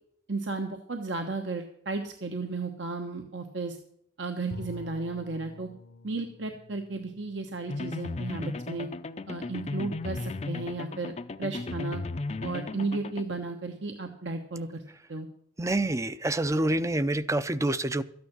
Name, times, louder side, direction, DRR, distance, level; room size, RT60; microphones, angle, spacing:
voice 1, 0.3-3.8 4.2-5.7 6.0-8.9 9.3-11.1 11.4-12.0 12.4-14.8 15.1-15.3, right 3 dB, 65° right, 4 dB, 1.2 m, -34 dB
Bowed string instrument, 4.5-9.3, left 2 dB, 60° left, 0.8 m, -48 dB
sound 1, 7.7-13.2, left 3 dB, 35° left, 0.5 m, -35 dB
voice 2, 15.6-18.0, right 1 dB, 15° right, 14 dB, 0.5 m, -27 dB
13.5 x 9.5 x 6.1 m, 0.72 s
head